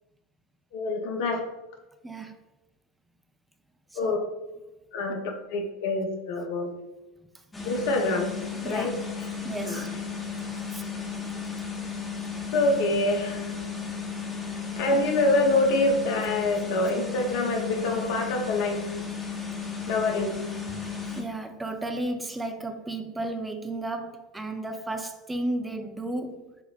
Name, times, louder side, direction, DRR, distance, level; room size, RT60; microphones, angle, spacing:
voice 1, 0.7-1.4 4.0-4.2 4.9-5.2 5.5-6.7 7.6-8.3 8.6-8.9 9.6-9.9 12.5-13.5 14.8-18.9 19.9-20.4, left 2 dB, 60° left, 0.6 m, -26 dB
voice 2, 2.0-2.3 4.0-4.2 8.6-8.9 9.4-9.9 10.7-10.8 14.9-15.0 21.2-26.4, right 2 dB, 10° right, 0.4 m, -33 dB
sound 1, 7.5-21.2, left 5 dB, 15° left, 0.7 m, -34 dB
6.0 x 2.0 x 2.4 m
hypercardioid pair, 80°, 0 cm